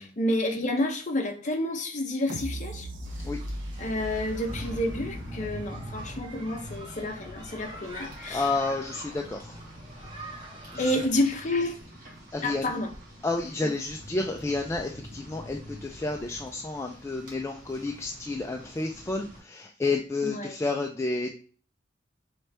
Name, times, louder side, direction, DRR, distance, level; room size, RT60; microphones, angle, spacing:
voice 1, 0.0-2.9 3.8-8.5 10.8-11.8 12.4-12.9 13.6-13.7 20.2-20.6, left 1 dB, 40° left, 4 dB, 0.7 m, -29 dB
sound 1, 2.3-7.2 7.6-7.7, right 1 dB, 80° right, 0.6 m, -39 dB
Rain, 3.0-19.4, equal, 50° right, 1.5 m, -45 dB
sound 2, 4.0-11.1, right 1 dB, 25° right, 0.9 m, -45 dB
voice 2, 8.3-9.5 10.7-10.8 12.3-12.7 13.2-21.3, left 3 dB, 15° left, 1 dB, 0.3 m, -30 dB
4.3 x 3.2 x 3.3 m, 0.41 s
head